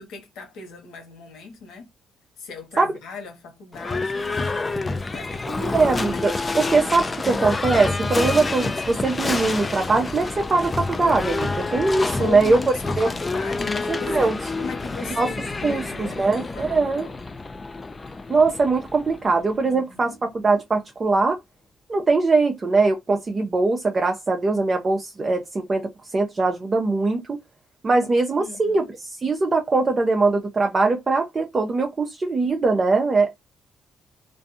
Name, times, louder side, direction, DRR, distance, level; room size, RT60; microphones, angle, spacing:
voice 1, 0.0-1.9 2.4-4.6 5.1-6.3 12.2-17.2 19.6-20.2 28.4-29.0, left 4 dB, 85° left, 1.1 m, -37 dB
Livestock farm animals working animals / Bell, 3.7-19.6, left 3 dB, 25° left, 0.4 m, -28 dB
voice 2, 5.7-12.6 13.0-13.1 14.1-14.4 15.2-15.3 15.6-17.1 18.3-21.4 21.9-27.4 27.8-33.4, right 3 dB, 35° right, 0.5 m, -21 dB
2.5 x 2.2 x 2.6 m
cardioid pair, 90°, 0 cm